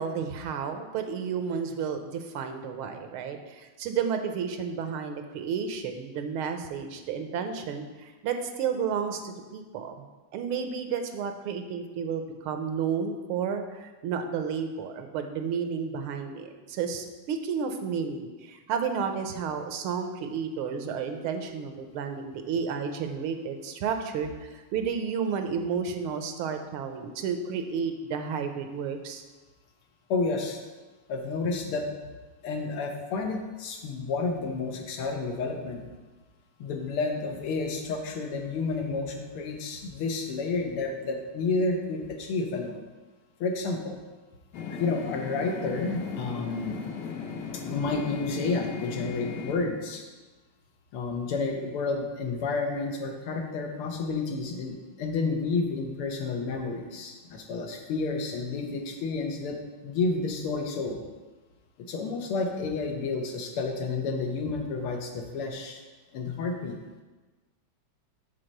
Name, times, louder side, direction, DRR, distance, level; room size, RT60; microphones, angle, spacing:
voice 1, 0.0-10.0 10.3-29.2, right 6 dB, 75° right, 6 dB, 1.5 m, -32 dB
voice 2, 30.1-30.6 31.1-31.9 32.4-35.8 36.6-42.8 43.4-44.0 44.7-46.8 47.6-50.0 50.9-59.6 59.8-61.0 61.9-65.8 66.1-66.8, left 3 dB, 80° left, 3 dB, 1.9 m, -30 dB
sound 1, 44.5-49.5, left 5 dB, 60° left, 1.2 m, -37 dB
7.7 x 4.2 x 6.4 m, 1.2 s
omnidirectional pair, 2.4 m